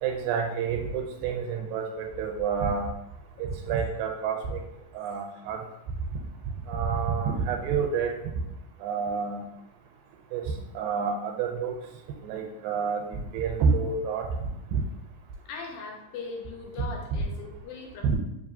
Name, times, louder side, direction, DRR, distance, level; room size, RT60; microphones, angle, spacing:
voice 1, 0.0-2.9 3.4-4.6 4.9-5.6 6.7-8.1 8.8-9.4 10.3-11.7 12.2-14.3 14.7-14.8 16.8-17.2 18.0-18.2, right 6 dB, 90° right, 3 dB, 2.3 m, -28 dB
voice 2, 15.5-18.2, left 4 dB, 85° left, 1 dB, 2.5 m, -39 dB
5.3 x 2.7 x 2.6 m, 0.85 s
omnidirectional pair, 4.0 m